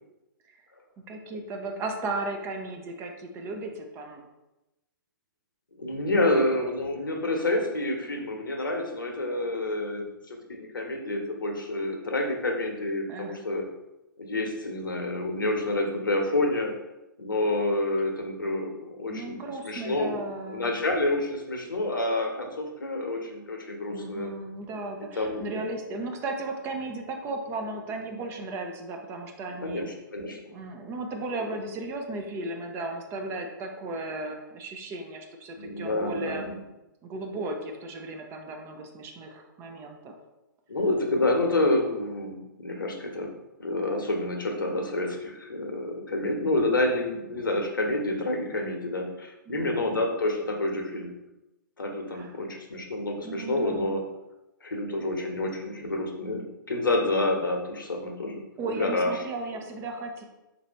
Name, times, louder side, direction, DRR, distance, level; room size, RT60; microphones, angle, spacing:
voice 1, 1.1-4.2 6.0-6.5 13.1-13.4 19.1-20.7 23.9-29.8 30.5-36.4 37.0-40.1 49.5-50.0 52.1-52.4 53.2-54.0 58.6-60.2, right 2 dB, 20° right, 3 dB, 0.6 m, -35 dB
voice 2, 5.7-13.6 14.2-16.7 17.2-24.3 25.1-25.6 29.6-30.5 35.6-36.5 40.7-43.3 43.6-51.1 51.8-54.0 54.6-58.4 58.7-59.1, left 2 dB, 75° left, 2 dB, 0.9 m, -28 dB
4.0 x 2.7 x 4.4 m, 0.98 s
figure-of-eight pair, 115°, 11 cm